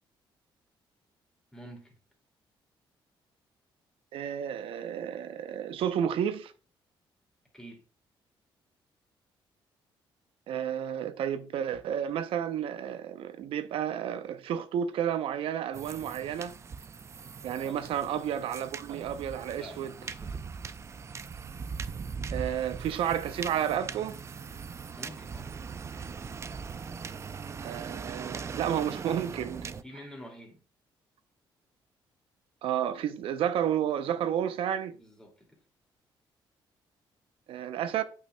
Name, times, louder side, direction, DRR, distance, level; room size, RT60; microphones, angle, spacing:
voice 1, 1.5-2.0 7.5-7.8 17.5-18.0 19.6-20.5 24.9-25.5 29.8-30.6 34.9-35.6, equal, 5° left, 2.4 m, -48 dB
voice 2, 4.1-6.5 10.5-16.5 17.4-19.9 22.3-24.2 27.6-29.7 32.6-35.0 37.5-38.0, right 9 dB, 80° right, 0.6 m, -31 dB
sound 1, 15.7-29.8, right 5 dB, 30° right, 0.4 m, -40 dB
8.6 x 5.6 x 2.2 m
cardioid pair, 110°, 9 cm